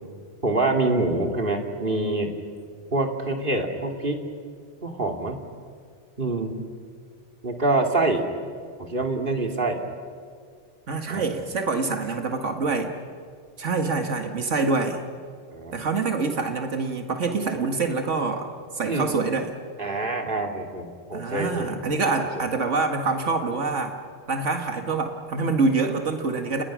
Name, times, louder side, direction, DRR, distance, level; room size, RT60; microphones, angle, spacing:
voice 1, 0.4-2.3 2.9-4.2 4.8-5.4 6.2-6.6 7.4-8.3 8.8-9.8 11.1-11.3 15.5-15.7 18.9-19.2 19.8-21.8 22.2-22.3, right 2 dB, 45° right, 3 dB, 3.0 m, -25 dB
voice 2, 10.9-12.9 13.6-15.0 15.7-18.5 18.7-19.5 21.1-24.0 24.3-26.6, right 4 dB, 85° right, 5 dB, 2.1 m, -25 dB
30.0 x 30.0 x 6.3 m, 2.1 s
omnidirectional pair, 1.2 m